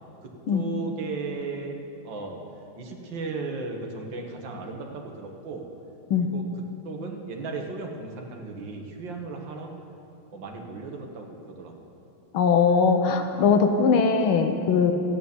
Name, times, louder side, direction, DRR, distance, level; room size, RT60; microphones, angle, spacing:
voice 1, 0.2-1.8 2.0-2.4 2.8-5.7 6.2-6.5 6.8-9.7 10.3-11.7, right 3 dB, 65° right, 2 dB, 2.1 m, -35 dB
voice 2, 12.3-14.9, left 5 dB, 80° left, 6 dB, 1.7 m, -20 dB
13.5 x 9.4 x 7.0 m, 2.9 s
omnidirectional pair, 2.3 m